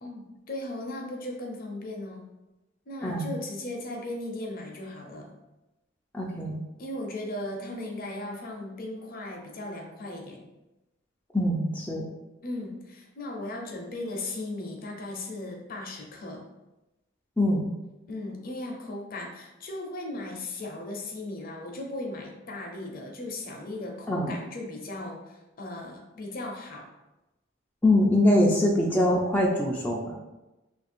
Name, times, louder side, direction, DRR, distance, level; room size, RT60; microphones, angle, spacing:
voice 1, 0.0-2.3 2.9-5.3 6.8-10.5 12.4-16.5 18.1-26.9 28.5-28.6, left 2 dB, 50° left, 1 dB, 0.7 m, -37 dB
voice 2, 3.0-3.3 6.1-6.6 11.3-12.0 17.4-17.7 24.1-24.3 27.8-30.2, left 1 dB, 10° left, -3 dB, 0.4 m, -23 dB
3.1 x 2.5 x 4.2 m, 1.0 s
head